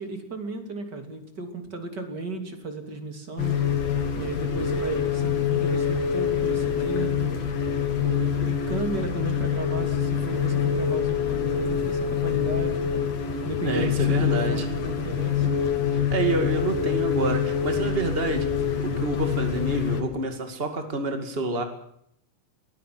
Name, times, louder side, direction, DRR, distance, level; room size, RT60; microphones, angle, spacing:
voice 1, 0.0-3.6 4.1-7.4 8.0-13.1 13.4-15.7, right 3 dB, 25° right, 6 dB, 2.9 m, -35 dB
sound 1, 3.4-20.0, left 7 dB, 55° left, 4.1 m, -25 dB
voice 2, 13.6-14.6 16.1-18.5 18.8-21.6, right 2 dB, 60° right, 6 dB, 0.5 m, -28 dB
22.0 x 18.0 x 7.9 m, 0.71 s
omnidirectional pair, 5.4 m